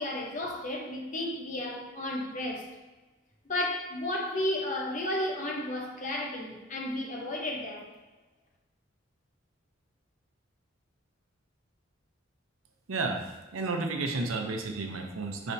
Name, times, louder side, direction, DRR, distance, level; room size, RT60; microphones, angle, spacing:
voice 1, 0.0-2.7 3.5-7.9, left 1 dB, 40° left, 0 dB, 0.7 m, -33 dB
voice 2, 12.9-15.5, right 3 dB, 90° right, 3 dB, 0.6 m, -32 dB
5.3 x 3.3 x 2.7 m, 1.1 s
head